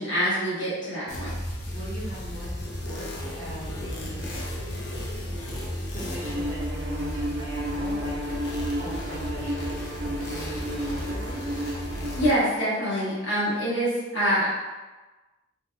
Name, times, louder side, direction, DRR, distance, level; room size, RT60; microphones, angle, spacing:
voice 1, 0.0-1.3 12.2-14.5, equal, 70° left, -10 dB, 1.0 m, -25 dB
sound 1, 1.1-12.3, equal, 55° left, 0.6 m, -34 dB
voice 2, 1.7-2.5 2.8-3.1 3.3-4.3 5.9-11.4, right 1 dB, 40° left, -10 dB, 1.2 m, -39 dB
Bowed string instrument, 6.2-12.8, equal, 80° right, 0.4 m, -33 dB
3.2 x 2.9 x 2.3 m, 1.2 s
head